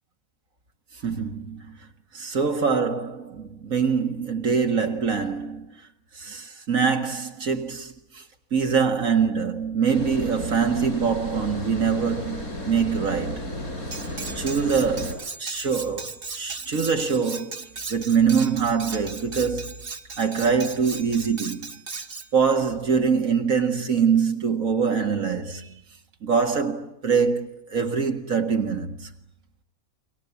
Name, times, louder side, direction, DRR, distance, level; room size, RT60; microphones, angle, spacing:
voice 1, 1.0-1.8 2.1-5.8 6.1-8.2 8.5-13.5 14.3-19.7 20.2-21.7 22.3-25.8 26.2-29.1, right 6 dB, 65° right, 2.2 m, -24 dB
Water, 9.9-15.1, left 1 dB, 85° left, 7.1 m, -33 dB
Cutlery silverware, 13.9-22.3, right 4 dB, 40° right, 1.5 m, -37 dB
29.5 x 23.5 x 8.3 m
omnidirectional pair, 1.5 m